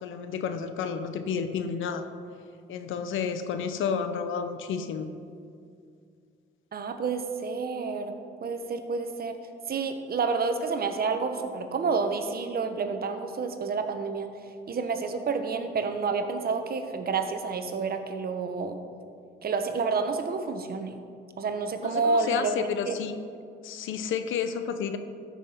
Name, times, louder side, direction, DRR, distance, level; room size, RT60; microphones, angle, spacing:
voice 1, 0.0-2.1 2.7-5.1 21.8-23.2 23.6-25.0, left 6 dB, 80° left, 9 dB, 0.8 m, -31 dB
voice 2, 6.7-9.3 9.7-14.3 14.7-18.8 19.4-21.0 21.4-22.6 22.9-23.0, right 4 dB, 50° right, 7 dB, 1.1 m, -29 dB
13.0 x 6.0 x 5.6 m, 2.3 s
cardioid pair, 90°, 20 cm